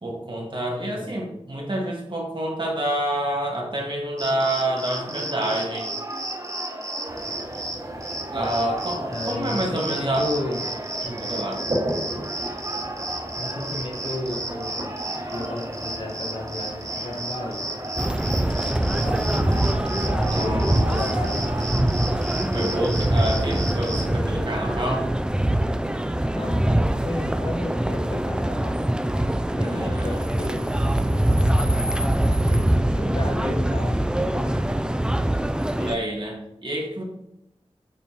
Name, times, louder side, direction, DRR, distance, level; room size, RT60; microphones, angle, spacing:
voice 1, 0.0-5.9 8.3-10.3 11.0-11.6 20.3-21.2 22.5-25.1 29.6-30.2 35.8-37.0, right 1 dB, 45° right, -1 dB, 1.8 m, -28 dB
voice 2, 0.7-1.1 9.1-10.6 13.3-14.7 15.3-17.8 18.8-19.6 20.0-21.6 26.3-26.7 27.0-28.9 29.5-30.8 31.3-34.6, left 1 dB, 50° left, 1 dB, 1.3 m, -33 dB
Cricket, 4.2-24.1, right 1 dB, 30° right, 1.0 m, -32 dB
sound 1, 7.0-24.6, right 1 dB, 80° right, 2.4 m, -38 dB
sound 2, 18.0-36.0, right 1 dB, 10° right, 0.4 m, -23 dB
7.1 x 5.2 x 3.0 m, 0.83 s
wide cardioid pair, 55°, 11 cm